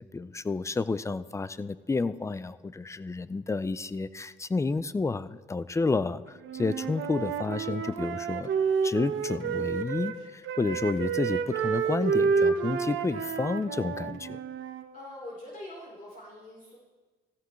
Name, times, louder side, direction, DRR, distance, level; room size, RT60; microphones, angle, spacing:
voice 1, 0.0-8.5 8.8-14.4, left 3 dB, 15° left, 15 dB, 0.4 m, -30 dB
Wind instrument woodwind instrument, 6.4-10.2 10.4-14.8, right 6 dB, 80° right, 0.9 m, -29 dB
voice 2, 14.9-16.8, left 1 dB, 45° left, -5 dB, 3.6 m, -43 dB
15.5 x 15.0 x 3.1 m, 1.3 s
cardioid pair, 90°, 20 cm